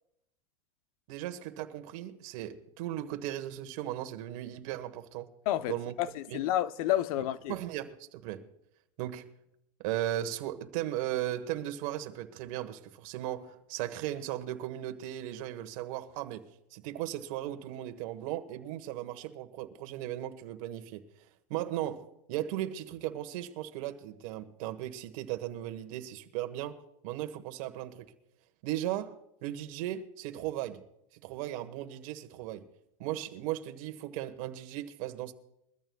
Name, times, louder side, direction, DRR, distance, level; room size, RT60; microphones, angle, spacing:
voice 1, 1.1-5.3 5.7-5.9 6.3-6.4 7.5-8.5 9.0-9.3 9.8-16.4 16.7-21.0 21.5-26.8 27.0-28.1 28.6-29.2 29.4-30.8 31.2-32.6 33.0-35.3, right 13 dB, 65° right, 1.3 m, -37 dB
voice 2, 5.5-7.5, left 13 dB, 70° left, 0.8 m, -30 dB
22.5 x 14.0 x 2.3 m
supercardioid pair, 120°, 19 cm